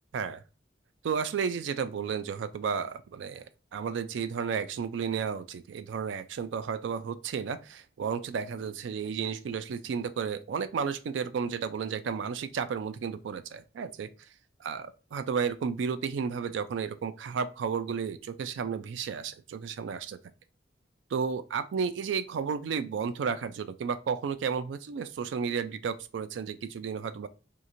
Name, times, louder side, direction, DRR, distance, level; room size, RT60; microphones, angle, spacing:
voice 1, 1.0-3.4 3.7-14.1 14.6-20.2 21.1-27.3, right 6 dB, 85° right, 0.3 m, -32 dB
3.0 x 2.4 x 2.5 m
head